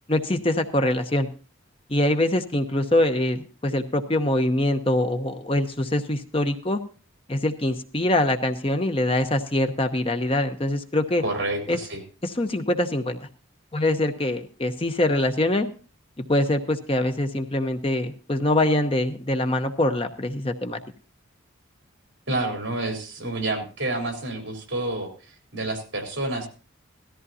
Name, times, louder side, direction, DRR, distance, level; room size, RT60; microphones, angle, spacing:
voice 1, 0.1-1.3 1.9-6.8 7.3-11.2 11.7-11.8 12.2-13.2 13.7-15.7 16.2-20.8, left 1 dB, 25° left, 7 dB, 0.8 m, -24 dB
voice 2, 11.2-12.0 22.3-26.5, right 2 dB, 60° right, 4 dB, 3.8 m, -29 dB
17.5 x 14.0 x 2.8 m, 0.36 s
head